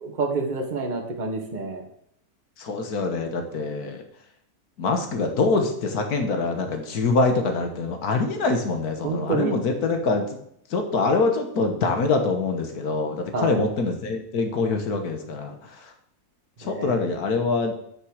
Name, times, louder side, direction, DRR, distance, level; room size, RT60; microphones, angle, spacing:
voice 1, 0.0-1.8 9.0-9.6 13.3-13.7 16.6-17.0, right 4 dB, 30° right, 2 dB, 1.3 m, -28 dB
voice 2, 2.6-4.0 4.8-10.4 10.7-15.6 16.6-17.7, left 3 dB, 75° left, 5 dB, 1.7 m, -24 dB
6.4 x 6.2 x 6.4 m, 0.69 s
omnidirectional pair, 1.6 m